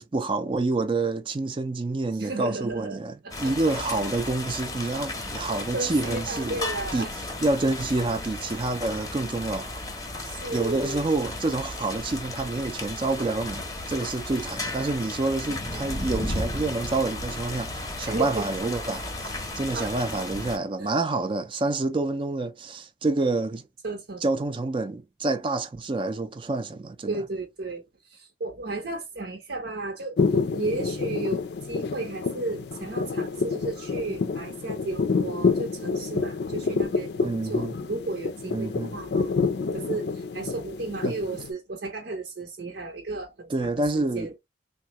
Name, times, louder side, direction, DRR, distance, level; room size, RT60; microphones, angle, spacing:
voice 1, 0.0-6.5 6.9-9.7 10.5-23.7 24.2-27.2 37.2-37.8 38.5-39.0 41.0-41.2 43.5-44.3, right 2 dB, 30° right, 0.4 m, -28 dB
voice 2, 2.2-3.0 3.2-3.7 5.7-7.1 10.2-11.1 18.0-18.5 19.7-19.9 20.8-21.0 23.8-24.2 27.1-30.2 30.5-39.3 39.7-44.3, right 2 dB, 80° right, 0.7 m, -34 dB
sound 1, 3.3-20.6, left 2 dB, 20° left, 0.6 m, -34 dB
sound 2, 30.2-41.5, left 4 dB, 70° left, 0.4 m, -28 dB
3.5 x 2.1 x 2.9 m
head